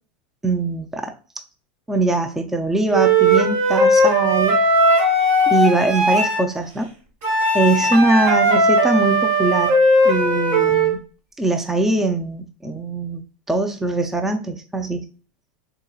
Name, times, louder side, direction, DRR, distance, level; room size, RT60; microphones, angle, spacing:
voice 1, 0.4-1.1 1.9-4.6 5.5-6.9 7.5-9.7 10.0-11.0 11.4-13.2 13.5-15.0, right 2 dB, 5° right, 5 dB, 0.4 m, -21 dB
Wind instrument woodwind instrument, 2.9-6.4 7.2-11.0, right 1 dB, 60° right, 1.4 m, -17 dB
3.6 x 2.8 x 2.3 m, 0.35 s
supercardioid pair, 135°, 5 cm